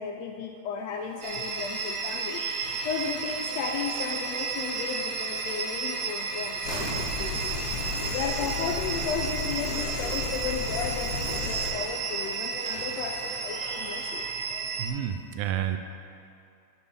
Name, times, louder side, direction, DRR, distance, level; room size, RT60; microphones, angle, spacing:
voice 1, 0.0-2.5 2.8-7.7 8.1-14.2, left 6 dB, 80° left, 2 dB, 1.6 m, -34 dB
sound 1, 0.8-14.9, right 1 dB, 40° right, 1.3 m, -45 dB
sound 2, 1.2-14.9, right 5 dB, 60° right, 2.0 m, -33 dB
sound 3, 6.6-11.7, left 3 dB, 60° left, 1.8 m, -34 dB
voice 2, 14.8-15.8, right 10 dB, 90° right, 7 dB, 1.4 m, -30 dB
10.5 x 5.5 x 7.0 m, 2.6 s
omnidirectional pair, 3.5 m